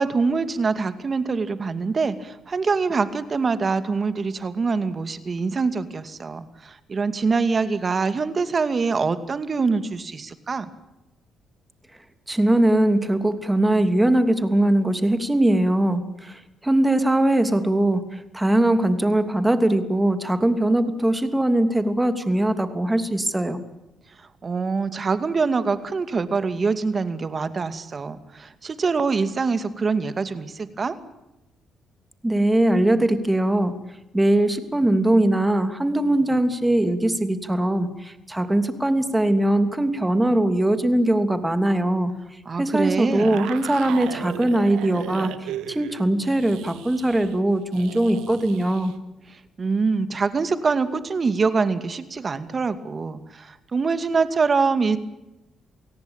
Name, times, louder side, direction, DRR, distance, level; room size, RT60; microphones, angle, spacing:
voice 1, 0.0-10.7 24.4-31.0 42.5-43.4 49.6-55.0, right 4 dB, 35° right, 12 dB, 2.4 m, -24 dB
voice 2, 12.3-23.6 32.2-33.7 34.1-42.1 42.6-48.9, right 1 dB, 10° right, 10 dB, 2.8 m, -21 dB
sound 1, 43.1-48.9, right 11 dB, 90° right, 1.7 m, -37 dB
28.5 x 18.0 x 9.0 m, 0.96 s
cardioid pair, 90°, 0 cm